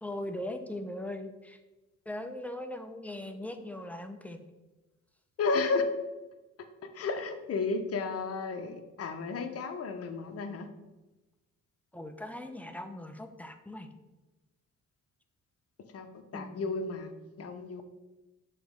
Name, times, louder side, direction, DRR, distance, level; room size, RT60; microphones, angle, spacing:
voice 1, 0.0-1.6 2.1-4.4 11.9-13.9 16.3-16.7, left 1 dB, 5° left, 6 dB, 0.6 m, -40 dB
voice 2, 5.4-5.9 6.9-10.7 15.9-17.1 17.4-17.8, left 4 dB, 50° left, 6 dB, 0.9 m, -32 dB
6.8 x 3.1 x 5.2 m, 1.1 s
cardioid pair, 90°, 30 cm